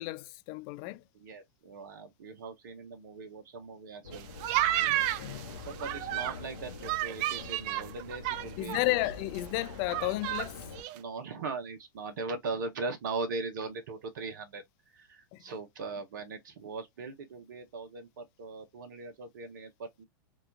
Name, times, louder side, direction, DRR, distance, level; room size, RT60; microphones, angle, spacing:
voice 1, 0.0-1.0 4.8-5.5 8.6-10.6 15.3-15.4, left 19 dB, 45° left, 0.3 m, -33 dB
voice 2, 1.1-4.3 5.6-9.0 10.9-14.6 14.9-20.1, right 3 dB, 65° right, 0.7 m, -39 dB
sound 1, 4.0-10.8, left 4 dB, 80° left, 0.9 m, -45 dB
sound 2, 4.1-6.4 6.8-8.8 9.1-9.2 9.4-10.5 10.8-11.0, right 14 dB, 45° right, 0.4 m, -31 dB
3.8 x 2.3 x 2.2 m
hypercardioid pair, 100°, 11 cm